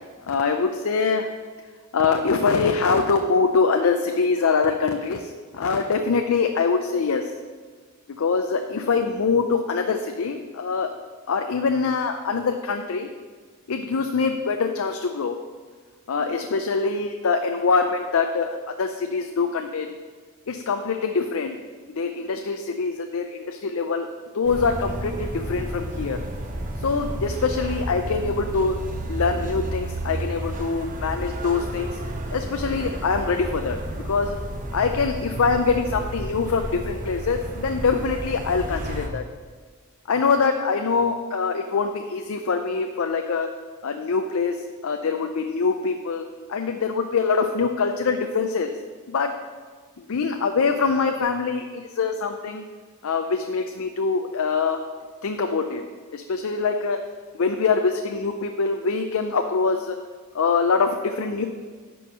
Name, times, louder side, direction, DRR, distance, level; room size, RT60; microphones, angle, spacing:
voice 1, 0.3-1.3 1.9-7.3 8.2-10.9 11.3-13.1 13.7-15.4 16.1-19.9 20.5-21.6 22.0-24.1 24.3-26.2 26.8-28.7 29.1-31.9 32.3-33.8 34.1-34.4 34.7-39.2 40.1-43.5 43.8-44.6 44.8-46.2 46.5-48.7 49.1-49.4 50.1-52.7 53.0-54.8 55.2-55.8 56.1-57.0 57.3-60.0 60.3-61.4, left 4 dB, 65° left, 6 dB, 0.5 m, -24 dB
sound 1, 24.4-39.1, right 1 dB, 35° right, 0.9 m, -32 dB
10.5 x 4.6 x 6.0 m, 1.5 s
head